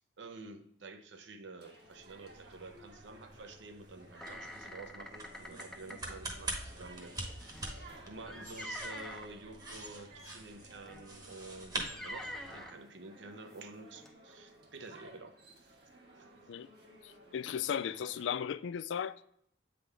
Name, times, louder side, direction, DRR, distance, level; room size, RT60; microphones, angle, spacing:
voice 1, 0.0-15.3, right 3 dB, 85° right, 0.7 m, -50 dB
sound 1, 1.6-18.4, right 1 dB, 65° right, 1.4 m, -57 dB
sound 2, 1.9-12.7, right 2 dB, 25° right, 1.1 m, -45 dB
sound 3, 4.2-6.1 7.4-9.3 10.2-10.4 10.9-11.0 11.7-12.8 13.5-13.6 14.0-14.1, equal, 5° left, 0.6 m, -45 dB
voice 2, 17.3-19.2, left 8 dB, 85° left, 0.3 m, -35 dB
8.3 x 3.8 x 3.3 m
head